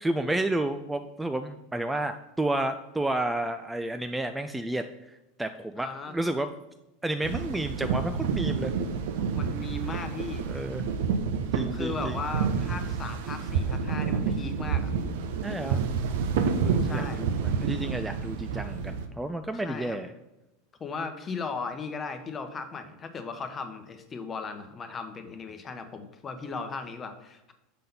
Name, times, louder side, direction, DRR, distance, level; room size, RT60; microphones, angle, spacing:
voice 1, 0.0-6.5 7.0-8.7 10.5-10.9 11.5-12.2 15.4-15.8 16.6-20.1, right 1 dB, 10° right, 8 dB, 0.4 m, -31 dB
voice 2, 5.8-6.1 9.3-10.5 11.7-14.9 16.8-17.2 19.6-20.0 20.8-27.5, left 4 dB, 25° left, 8 dB, 0.9 m, -37 dB
sound 1, 7.2-19.1, right 6 dB, 65° right, 0.6 m, -29 dB
6.7 x 3.8 x 5.4 m, 0.96 s
figure-of-eight pair, 85°, 0 cm